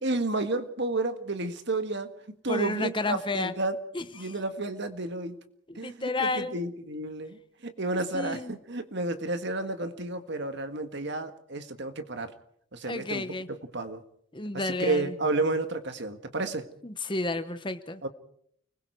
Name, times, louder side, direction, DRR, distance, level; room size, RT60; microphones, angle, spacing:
voice 1, 0.0-2.1 2.4-3.8 4.1-5.3 5.7-12.3 12.7-14.0 14.6-16.7 18.0-18.1, right 2 dB, 55° right, 9 dB, 1.7 m, -31 dB
voice 2, 2.5-3.5 3.9-4.3 5.7-6.5 8.1-8.5 12.8-13.5 14.3-15.1 16.8-18.1, left 2 dB, 25° left, 11 dB, 1.0 m, -31 dB
29.5 x 21.0 x 4.7 m, 0.65 s
head